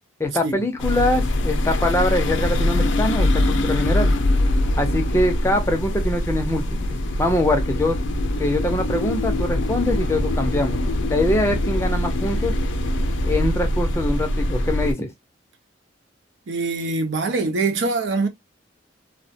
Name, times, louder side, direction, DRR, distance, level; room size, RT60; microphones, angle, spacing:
voice 1, 0.2-4.1 4.8-8.0 8.4-10.8 11.1-12.5 13.2-15.1, left 1 dB, 15° left, 0.5 m, -23 dB
sound 1, 0.8-14.9, left 1 dB, 75° left, 0.5 m, -23 dB
voice 2, 16.5-18.3, right 3 dB, 70° right, 0.6 m, -23 dB
2.2 x 2.1 x 2.6 m
head